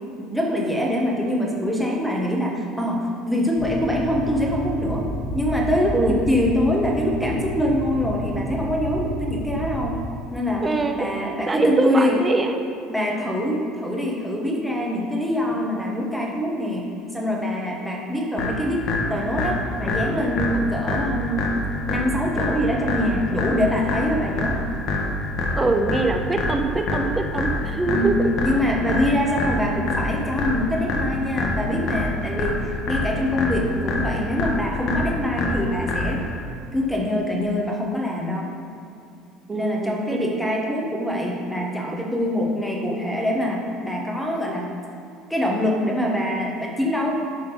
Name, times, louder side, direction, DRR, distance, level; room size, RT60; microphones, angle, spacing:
voice 1, 0.1-5.1 5.3-10.0 10.3-12.2 12.9-21.6 21.9-24.6 27.8-36.2 36.7-38.5 39.5-44.7 45.3-47.1, left 1 dB, ahead, -1 dB, 1.3 m, -24 dB
sound 1, 3.6-9.9, left 1 dB, 45° right, 1.6 m, -31 dB
voice 2, 10.6-11.1 11.5-12.6 25.6-28.2 29.0-29.1 39.5-40.2, right 3 dB, 15° right, 5 dB, 0.7 m, -23 dB
sound 2, 18.4-36.4, left 2 dB, 50° left, 1.4 m, -26 dB
11.5 x 3.9 x 5.5 m, 2.5 s
cardioid pair, 135°, 0 cm